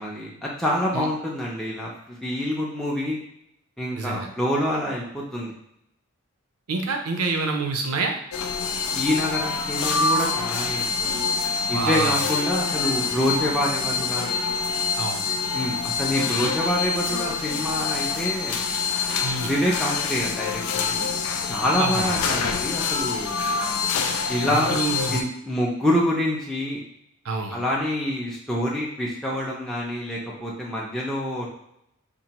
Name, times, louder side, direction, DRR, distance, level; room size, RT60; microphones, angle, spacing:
voice 1, 0.0-3.2 3.8-5.5 8.9-11.2 11.7-14.3 15.5-18.6 19.4-21.1 21.5-23.4 24.3-24.7 25.1-26.8 27.5-31.5, left 1 dB, ahead, -5 dB, 0.5 m, -26 dB
voice 2, 4.0-4.3 6.7-8.1 11.7-12.2 15.0-15.2 16.4-16.5 19.2-19.5 21.8-22.1 24.5-25.2 27.2-27.6, right 3 dB, 85° right, 4 dB, 0.6 m, -27 dB
sound 1, 8.3-25.2, left 5 dB, 80° left, 0.4 m, -26 dB
4.5 x 2.5 x 2.9 m, 0.78 s
head